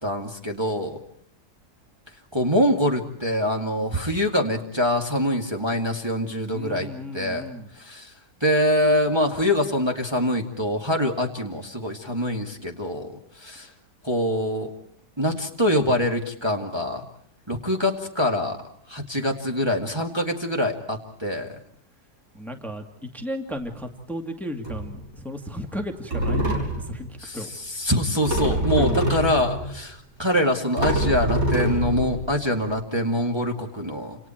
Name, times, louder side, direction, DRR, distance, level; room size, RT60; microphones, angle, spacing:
voice 1, 0.0-1.0 2.3-7.4 7.7-8.1 8.4-13.7 14.0-14.7 15.2-17.0 17.5-18.6 18.9-21.6 27.2-34.2, left 1 dB, 15° right, 1 dB, 2.3 m, -24 dB
voice 2, 6.5-7.7 22.3-27.5 28.5-29.0, left 1 dB, ahead, 5 dB, 2.2 m, -34 dB
sound 1, 23.5-23.7 24.6-25.1 25.8-25.9 26.1-27.0 28.2-29.7 30.3-30.4 30.8-32.6, right 1 dB, 55° right, 6.2 m, -25 dB
29.5 x 28.0 x 4.6 m, 0.64 s
omnidirectional pair, 1.7 m